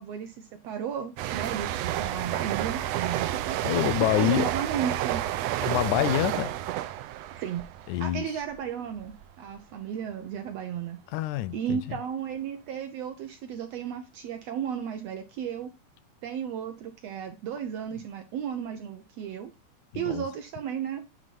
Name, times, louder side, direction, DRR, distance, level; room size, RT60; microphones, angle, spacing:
voice 1, 0.0-3.6 4.1-5.2 7.3-7.7 8.0-11.0 11.5-15.7 16.2-19.5 19.9-21.0, right 8 dB, 70° right, 1.6 m, -34 dB
sound 1, 1.2-8.6 8.9-9.2, right 13 dB, 90° right, 1.5 m, -30 dB
voice 2, 3.6-4.5 5.6-6.5 7.9-8.3 11.1-11.8 19.9-20.3, left 14 dB, 80° left, 1.9 m, -26 dB
9.2 x 3.5 x 5.3 m
omnidirectional pair, 3.6 m